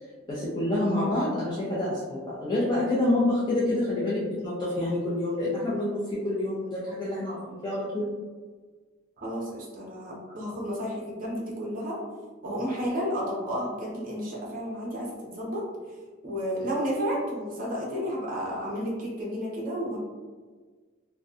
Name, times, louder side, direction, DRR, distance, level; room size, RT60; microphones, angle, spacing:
voice 1, 0.3-8.1, left 1 dB, 20° left, -9 dB, 0.5 m, -27 dB
voice 2, 9.2-12.0 12.4-15.7 16.2-20.0, equal, 45° right, -4 dB, 0.7 m, -32 dB
2.6 x 2.2 x 2.4 m, 1.4 s
head